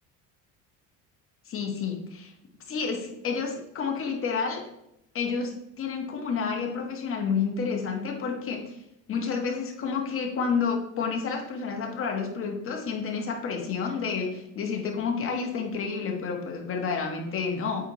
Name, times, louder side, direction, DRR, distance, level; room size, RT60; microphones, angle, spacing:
voice 1, 1.5-2.3 2.7-4.6 5.1-8.8 9.1-17.9, left 5 dB, 40° left, 2 dB, 1.5 m, -30 dB
8.1 x 4.2 x 3.1 m, 0.82 s
cardioid pair, 125°, 34 cm